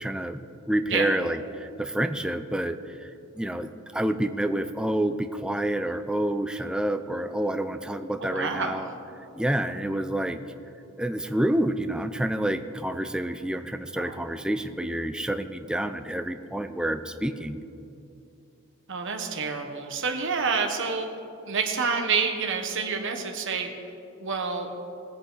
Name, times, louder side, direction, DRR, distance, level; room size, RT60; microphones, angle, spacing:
voice 1, 0.0-8.9 9.4-10.4 11.0-17.6, right 1 dB, 5° right, 9 dB, 0.4 m, -28 dB
voice 2, 8.2-8.8 14.0-14.2 18.9-21.1 21.5-23.7 24.2-24.7, right 5 dB, 60° right, 4 dB, 1.1 m, -28 dB
20.5 x 8.0 x 3.9 m, 2.7 s
head